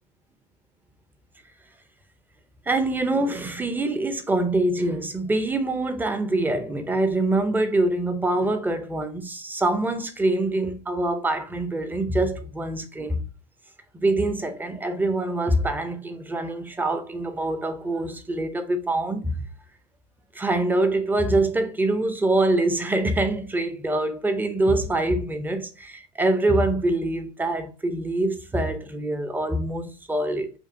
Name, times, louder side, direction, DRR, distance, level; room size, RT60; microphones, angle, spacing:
voice 1, 2.7-13.2 13.9-19.5 20.3-30.5, right 2 dB, 5° right, 0.5 m, -24 dB
5.2 x 2.4 x 2.6 m
hypercardioid pair, 105°, 29 cm